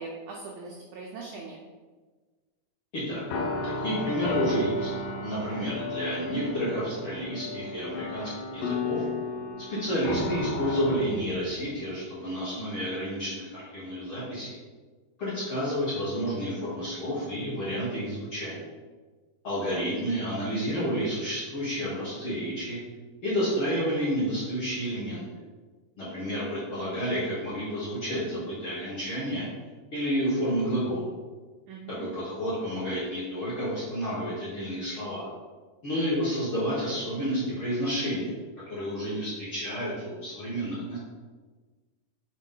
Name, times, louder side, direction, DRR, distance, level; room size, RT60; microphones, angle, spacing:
voice 1, 0.0-1.6 19.5-19.9 31.7-32.1, right 4 dB, 85° right, -2 dB, 1.7 m, -41 dB
voice 2, 2.9-4.9 5.2-9.0 9.7-14.6 15.2-18.6 19.4-22.8 23.2-25.2 26.0-29.5 29.9-31.1 31.9-35.3 35.8-38.3 38.7-41.0, equal, 55° left, -10 dB, 1.5 m, -30 dB
sound 1, 3.2-11.7, left 3 dB, 75° left, 2.0 m, -34 dB
6.2 x 4.0 x 3.7 m, 1.4 s
omnidirectional pair, 4.3 m